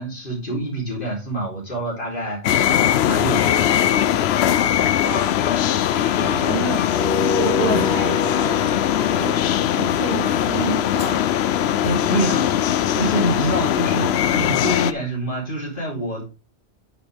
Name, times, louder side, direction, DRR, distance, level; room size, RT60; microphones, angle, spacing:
voice 1, 0.0-2.6 2.9-3.6 6.2-6.5 7.7-8.1 11.7-16.3, right 1 dB, 45° left, 3.7 m, -27 dB
sound 1, 2.4-14.9, left 10 dB, 65° left, 0.7 m, -20 dB
voice 2, 5.0-5.4 6.2-6.9 7.2-8.6 9.2-9.4 9.8-11.3, right 5 dB, 50° right, 1.4 m, -29 dB
sound 2, 6.9-11.7, left 3 dB, 5° left, 0.6 m, -29 dB
8.9 x 6.9 x 3.4 m
omnidirectional pair, 1.2 m